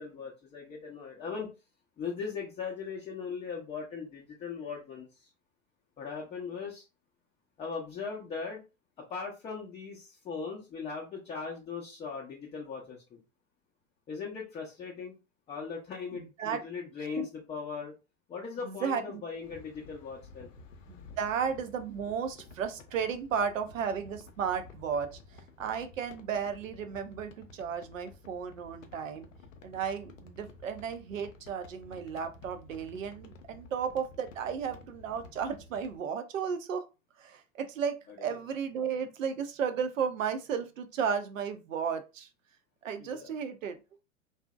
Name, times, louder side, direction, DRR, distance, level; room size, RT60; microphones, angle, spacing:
voice 1, 0.0-1.5 2.0-5.3 6.0-6.8 7.6-8.6 9.1-13.2 14.1-15.1 15.5-17.9 18.3-20.5 38.2-38.4 43.0-43.3, left 5 dB, 15° left, -2 dB, 0.5 m, -39 dB
voice 2, 16.1-16.6 17.2-17.3 18.6-19.2 20.9-29.3 29.6-36.9 37.2-42.3 42.8-43.8, right 7 dB, 70° right, 9 dB, 0.6 m, -34 dB
sound 1, 19.3-36.0, left 3 dB, 70° left, 0.6 m, -53 dB
2.6 x 2.0 x 2.3 m, 0.28 s
figure-of-eight pair, 90°, 40 cm